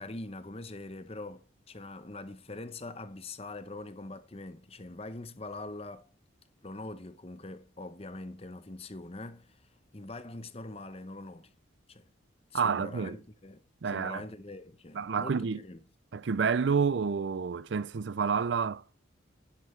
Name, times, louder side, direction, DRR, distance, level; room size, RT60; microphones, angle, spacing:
voice 1, 0.0-6.1 6.6-9.6 9.9-11.5 11.9-12.1 12.5-13.6 13.8-15.8, left 2 dB, 30° left, 0.9 m, -43 dB
voice 2, 12.5-13.2 13.8-14.2 14.9-15.6 16.1-18.8, right 6 dB, 65° right, 0.5 m, -29 dB
10.5 x 8.7 x 3.3 m
head